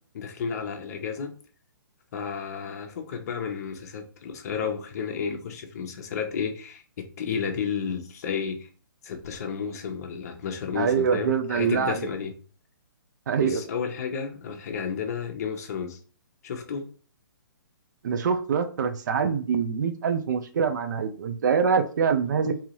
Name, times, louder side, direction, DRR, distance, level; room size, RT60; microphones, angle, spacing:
voice 1, 0.0-1.3 2.1-8.7 9.0-12.3 13.4-16.0 16.4-16.8, left 6 dB, 45° left, 0.8 m, -32 dB
voice 2, 10.7-12.1 13.3-13.6 18.0-22.6, right 6 dB, 55° right, 0.5 m, -25 dB
3.8 x 2.8 x 3.0 m
hypercardioid pair, 150°, 12 cm